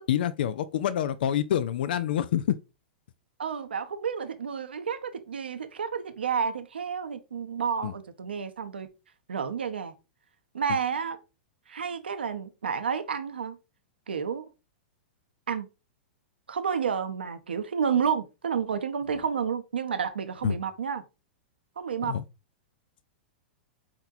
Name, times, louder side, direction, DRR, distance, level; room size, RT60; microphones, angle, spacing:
voice 1, 0.1-2.6 7.8-7.9 20.4-20.6 22.0-22.2, left 10 dB, 65° left, 0.3 m, -27 dB
voice 2, 3.4-8.9 9.3-9.9 10.5-11.2 11.7-13.6 14.1-14.5 15.5-15.7 16.5-21.0 21.8-22.2, right 7 dB, 85° right, 0.7 m, -30 dB
4.4 x 3.9 x 2.6 m
hypercardioid pair, 110°, 6 cm